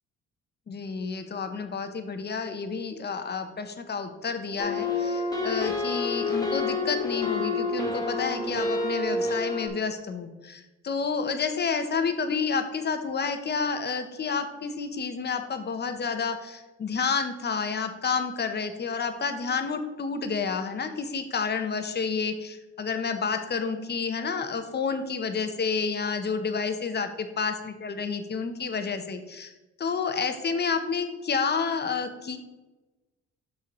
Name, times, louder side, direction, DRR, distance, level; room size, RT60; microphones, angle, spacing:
voice 1, 0.7-29.5 29.8-32.4, left 5 dB, 35° left, 8 dB, 0.8 m, -30 dB
sound 1, 4.6-9.7, left 3 dB, 15° left, 1.4 m, -28 dB
6.2 x 5.9 x 3.0 m, 1.1 s
cardioid pair, 90°, 30 cm